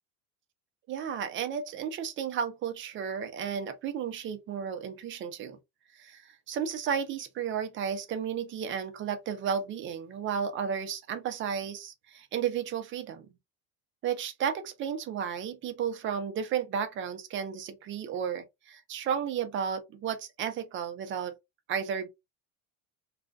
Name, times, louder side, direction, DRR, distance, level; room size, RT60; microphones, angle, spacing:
voice 1, 0.9-5.6 5.9-13.3 14.0-21.4 21.7-22.1, right 7 dB, 35° right, 0.5 m, -33 dB
2.4 x 2.2 x 2.3 m
supercardioid pair, 130°, 37 cm